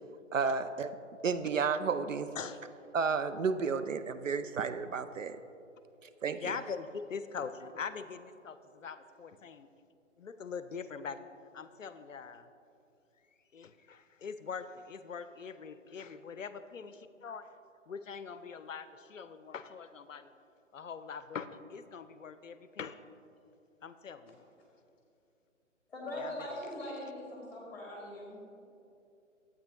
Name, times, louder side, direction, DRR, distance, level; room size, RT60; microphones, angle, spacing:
voice 1, 0.3-0.9 1.2-2.3 2.9-5.4 6.2-6.6, right 5 dB, 75° right, 11 dB, 0.5 m, -32 dB
voice 2, 6.4-9.7 10.2-11.2 11.5-12.5 13.5-17.4 17.9-20.3 20.7-23.0 23.8-24.4 26.2-26.3, left 6 dB, 75° left, 12 dB, 0.5 m, -42 dB
voice 3, 25.9-28.6, left 1 dB, 5° left, -3 dB, 2.0 m, -41 dB
11.5 x 8.2 x 2.9 m, 2.7 s
figure-of-eight pair, 135°, 39 cm